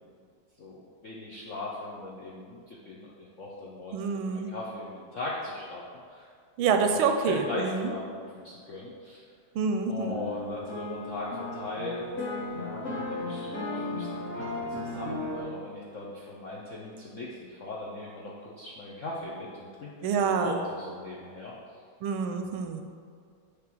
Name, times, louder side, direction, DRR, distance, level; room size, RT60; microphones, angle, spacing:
voice 1, 1.0-5.8 6.1-6.3 6.9-7.0 7.3-9.2 9.9-21.5, left 2 dB, 70° left, -5 dB, 0.7 m, -39 dB
voice 2, 3.9-4.5 6.6-7.9 9.5-10.2 20.0-20.6 22.0-22.8, right 5 dB, 85° right, 6 dB, 1.4 m, -27 dB
sound 1, 10.0-15.4, left 2 dB, 40° left, 1.6 m, -35 dB
6.8 x 3.3 x 6.1 m, 2.1 s
omnidirectional pair, 2.3 m